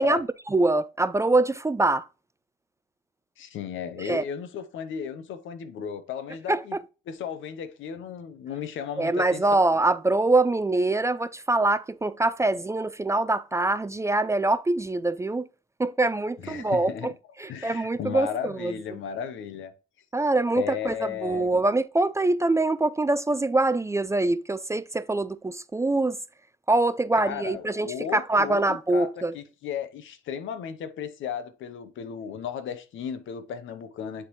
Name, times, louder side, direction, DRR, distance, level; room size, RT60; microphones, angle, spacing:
voice 1, 0.0-2.1 4.0-4.2 6.5-6.6 9.0-15.5 15.8-17.1 17.4-18.7 20.1-20.9 21.2-26.2 26.7-29.3, right 2 dB, 15° right, 0.4 m, -24 dB
voice 2, 3.4-6.8 7.1-9.4 16.4-17.1 17.5-19.7 20.5-21.5 27.1-34.3, left 8 dB, 80° left, 1.0 m, -35 dB
9.6 x 3.8 x 3.1 m
cardioid pair, 90°, 20 cm